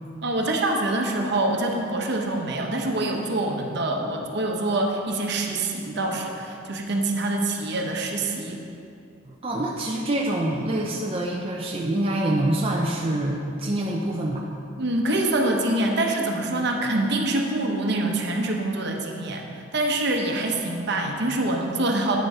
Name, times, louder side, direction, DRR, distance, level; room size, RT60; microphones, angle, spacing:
voice 1, 0.2-8.6 14.8-22.2, right 2 dB, 60° right, 1 dB, 1.0 m, -25 dB
voice 2, 9.2-14.4, right 1 dB, 30° right, -2 dB, 0.6 m, -26 dB
9.2 x 6.7 x 4.9 m, 2.6 s
head